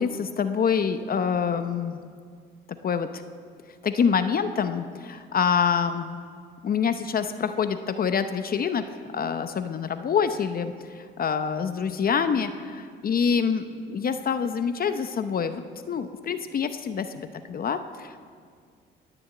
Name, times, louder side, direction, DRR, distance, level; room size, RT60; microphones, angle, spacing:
voice 1, 0.0-2.0 2.8-3.2 3.8-6.2 6.6-8.8 9.1-18.2, left 6 dB, 50° left, 9 dB, 0.7 m, -26 dB
19.0 x 7.0 x 8.2 m, 2.1 s
cardioid pair, 90°, 20 cm